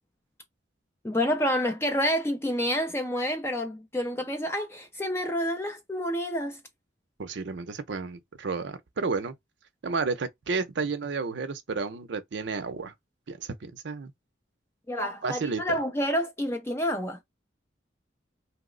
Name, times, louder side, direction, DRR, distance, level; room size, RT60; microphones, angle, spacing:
voice 1, 1.0-6.6 14.9-17.2, equal, 15° left, 0.3 m, -28 dB
voice 2, 7.2-9.4 9.8-12.9 13.3-14.1 15.2-15.8, right 4 dB, 70° right, 0.5 m, -32 dB
2.8 x 2.0 x 3.7 m
head